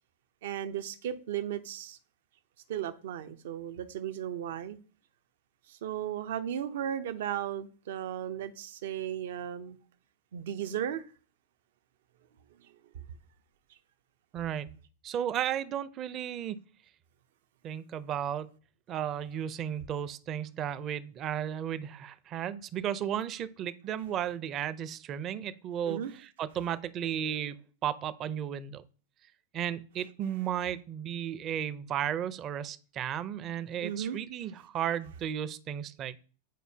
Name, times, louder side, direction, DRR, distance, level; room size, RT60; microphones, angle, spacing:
voice 1, 0.4-2.0 2.7-4.8 5.7-9.8 10.3-11.0 12.6-12.7 25.9-26.1 33.8-34.2, right 10 dB, 70° right, 0.7 m, -35 dB
voice 2, 14.3-14.7 15.0-16.6 17.6-18.5 18.9-27.6 27.8-28.8 29.5-36.2, right 10 dB, 35° right, 0.5 m, -34 dB
9.1 x 4.4 x 2.8 m
hypercardioid pair, 120°, 0 cm